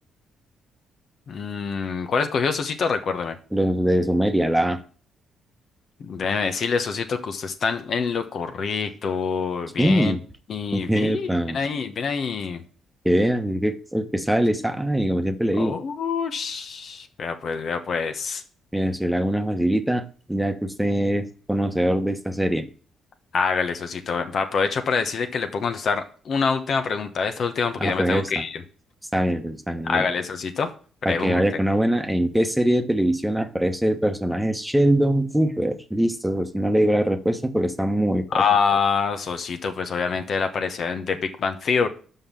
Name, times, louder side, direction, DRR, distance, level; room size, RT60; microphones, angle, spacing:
voice 1, 1.3-3.4 6.0-10.1 10.5-12.6 15.6-18.4 23.3-28.6 29.8-30.7 31.1-31.4 38.3-41.9, left 5 dB, 60° left, 7 dB, 1.0 m, -25 dB
voice 2, 3.5-4.8 9.8-10.2 10.7-11.6 13.0-15.8 18.7-22.6 27.8-28.3 29.1-30.0 31.0-38.4, right 1 dB, 5° right, 7 dB, 1.1 m, -22 dB
5.6 x 5.6 x 6.8 m, 0.40 s
supercardioid pair, 60°, 0 cm